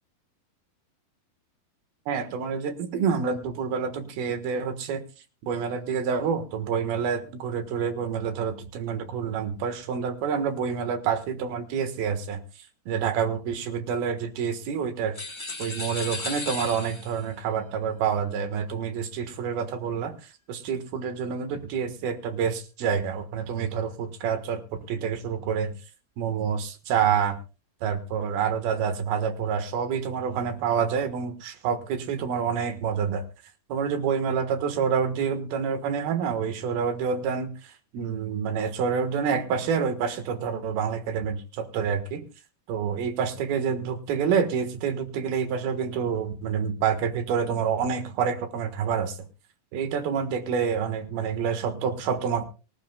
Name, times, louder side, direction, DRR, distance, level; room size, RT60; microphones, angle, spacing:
voice 1, 2.1-5.0 5.5-12.4 12.9-15.2 15.6-20.1 20.5-24.6 24.9-25.7 26.2-27.4 27.8-33.2 33.7-42.2 42.7-49.2 49.7-52.5, right 6 dB, 80° right, 9 dB, 3.2 m, -27 dB
sound 1, 15.1-17.3, left 2 dB, 40° left, 0.4 m, -35 dB
24.5 x 11.5 x 2.2 m, 0.32 s
omnidirectional pair, 4.3 m